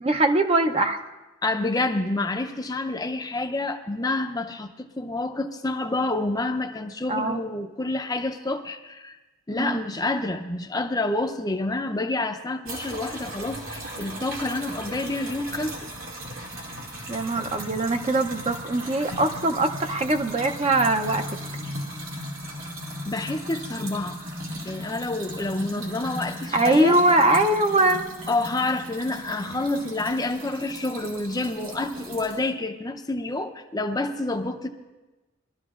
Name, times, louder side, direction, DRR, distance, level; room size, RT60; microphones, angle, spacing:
voice 1, 0.0-1.0 7.1-7.4 9.6-9.8 17.1-21.2 26.5-28.1, right 2 dB, 30° right, 6 dB, 0.6 m, -22 dB
voice 2, 1.4-9.2 9.5-15.8 23.1-24.2 24.7-27.0 28.3-34.7, left 2 dB, 20° left, 5 dB, 0.5 m, -28 dB
sound 1, 12.6-32.4, equal, 85° right, 2.3 m, -37 dB
22.5 x 12.5 x 2.4 m, 1.1 s
head